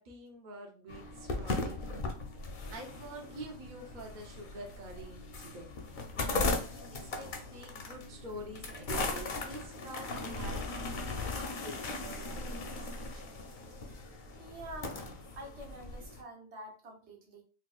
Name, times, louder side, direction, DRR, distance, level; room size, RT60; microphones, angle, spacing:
voice 1, 0.0-1.8 2.7-10.6 11.2-13.4, right 1 dB, 50° right, 0 dB, 0.8 m, -48 dB
sound 1, 0.9-16.2, left 3 dB, 55° left, 0.7 m, -38 dB
voice 2, 14.3-15.0 15.3-17.4, right 1 dB, 85° right, 0 dB, 1.2 m, -47 dB
4.0 x 2.3 x 2.3 m, 0.38 s
omnidirectional pair, 1.1 m